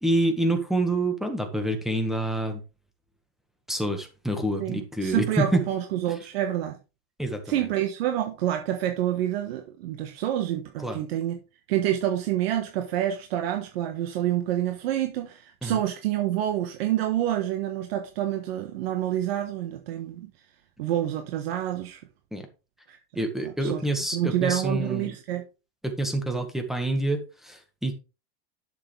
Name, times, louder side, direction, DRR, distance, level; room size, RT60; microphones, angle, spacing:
voice 1, 0.0-2.6 3.7-5.6 7.2-7.6 10.8-11.0 15.6-15.8 22.3-22.4 23.1-25.1 25.8-27.9, right 1 dB, ahead, 1.6 m, -27 dB
voice 2, 4.6-6.8 7.5-11.4 11.7-20.3 20.8-22.0 22.9-23.0 23.4-23.8 24.1-25.4, right 12 dB, 80° right, 1.4 m, -28 dB
11.0 x 6.9 x 3.4 m
supercardioid pair, 160°, 30 cm